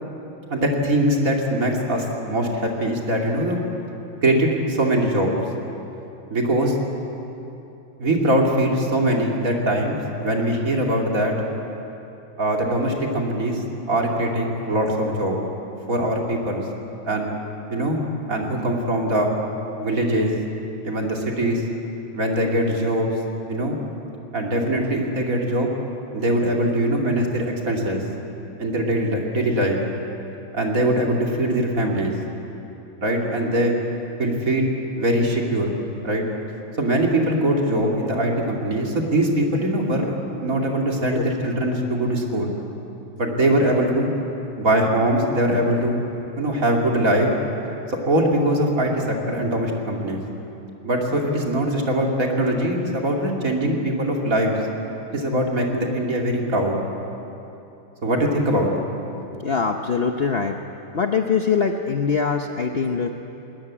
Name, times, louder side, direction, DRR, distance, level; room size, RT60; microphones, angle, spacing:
voice 1, 0.5-3.6 4.2-5.3 6.3-6.8 8.0-11.3 12.4-13.6 13.9-15.4 15.9-16.6 17.0-17.3 17.7-18.0 18.3-19.3 19.8-20.3 20.8-21.7 22.1-23.1 23.5-23.8 24.3-25.7 26.1-28.0 28.6-29.8 30.5-32.1 33.0-33.8 34.2-34.7 35.0-35.7 36.0-36.2 36.8-40.2 40.4-42.5 43.2-44.1 44.6-46.0 46.4-47.3 47.9-50.2 50.8-54.5 55.1-56.8 58.0-58.7, right 1 dB, 40° right, 0 dB, 2.9 m, -22 dB
voice 2, 59.3-60.6 60.9-63.1, left 5 dB, 60° left, 4 dB, 0.6 m, -23 dB
20.5 x 20.0 x 8.6 m, 2.9 s
omnidirectional pair, 2.3 m